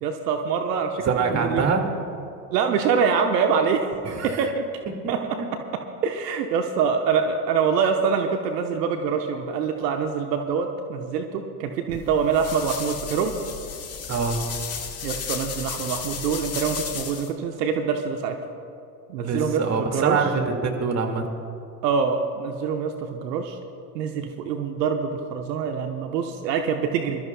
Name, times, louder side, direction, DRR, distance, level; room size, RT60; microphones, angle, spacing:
voice 1, 0.0-1.7 2.5-3.9 4.2-4.7 5.1-5.4 6.0-13.3 15.0-18.3 19.1-20.2 21.8-23.6 23.9-27.3, right 6 dB, 75° right, 4 dB, 1.1 m, -25 dB
voice 2, 1.0-1.9 4.0-4.5 14.1-14.4 19.2-21.3, right 5 dB, 30° right, 3 dB, 2.2 m, -24 dB
sound 1, 11.9-17.3, left 6 dB, 30° left, 1.6 m, -33 dB
26.0 x 13.5 x 2.3 m, 2.6 s
hypercardioid pair, 85°, 50 cm